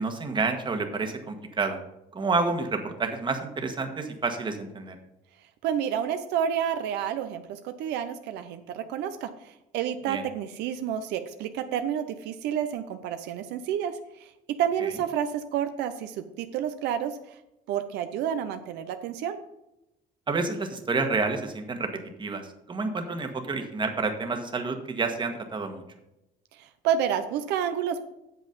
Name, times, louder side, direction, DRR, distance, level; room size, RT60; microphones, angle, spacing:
voice 1, 0.0-1.8 2.1-5.0 10.1-10.2 14.8-14.9 20.3-21.9 22.2-25.8, right 3 dB, 30° right, 5 dB, 1.4 m, -29 dB
voice 2, 5.6-14.3 14.6-17.2 17.7-19.4 26.6-28.0, right 9 dB, 85° right, 8 dB, 0.6 m, -29 dB
8.2 x 7.1 x 5.3 m, 0.90 s
cardioid pair, 110°, 17 cm